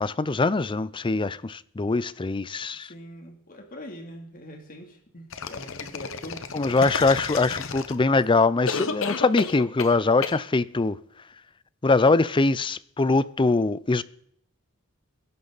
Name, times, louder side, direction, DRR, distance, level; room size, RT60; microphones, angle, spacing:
voice 1, 0.0-2.9 6.5-11.0 11.8-14.0, left 3 dB, 25° left, 0.5 m, -22 dB
voice 2, 2.7-6.4, equal, 45° left, 2.9 m, -42 dB
sound 1, 5.3-8.2 8.7-10.0 10.2-10.4, left 5 dB, 70° left, 1.1 m, -31 dB
21.5 x 11.0 x 4.1 m
head